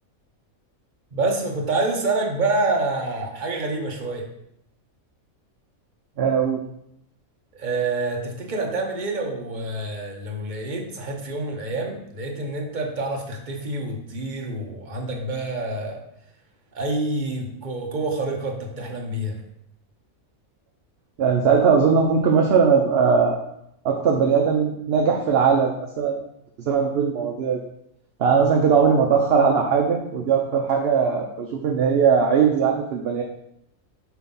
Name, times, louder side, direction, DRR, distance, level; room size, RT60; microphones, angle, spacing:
voice 1, 1.1-4.3 7.5-16.0 16.7-19.4, right 2 dB, 35° right, 1 dB, 1.1 m, -27 dB
voice 2, 6.2-6.6 21.2-23.4 23.8-26.2 26.7-27.6 28.2-33.2, right 6 dB, 55° right, 1 dB, 0.8 m, -19 dB
6.1 x 3.5 x 5.4 m, 0.77 s
omnidirectional pair, 1.5 m